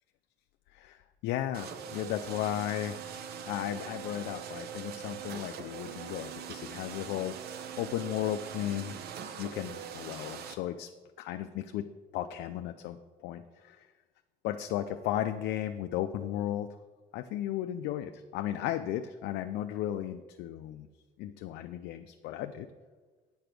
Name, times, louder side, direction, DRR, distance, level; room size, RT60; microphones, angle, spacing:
voice 1, 0.7-3.2 3.5-8.9 9.4-10.9 11.2-11.9 12.1-13.9 14.4-16.7 17.1-20.9 21.2-22.7, left 12 dB, 85° left, 8 dB, 0.4 m, -35 dB
sound 1, 1.5-10.5, right 8 dB, 70° right, 0.7 m, -42 dB
8.7 x 5.1 x 6.0 m, 1.4 s
cardioid pair, 110°, 17 cm